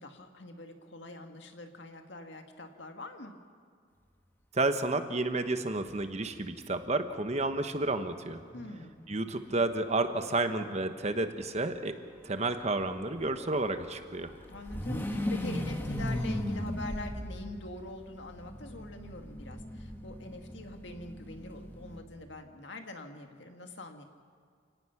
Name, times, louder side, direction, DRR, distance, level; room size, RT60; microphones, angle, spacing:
voice 1, 0.0-3.3 8.5-9.1 14.5-24.0, left 2 dB, 70° left, 5 dB, 1.9 m, -44 dB
voice 2, 4.5-8.4 9.1-12.0 12.2-14.3, right 2 dB, 35° right, 8 dB, 1.1 m, -31 dB
sound 1, 6.0-6.1 6.4-6.5 8.1-10.7 13.0-22.0, left 1 dB, 10° left, 1.7 m, -38 dB
28.5 x 18.0 x 5.9 m, 2.2 s
head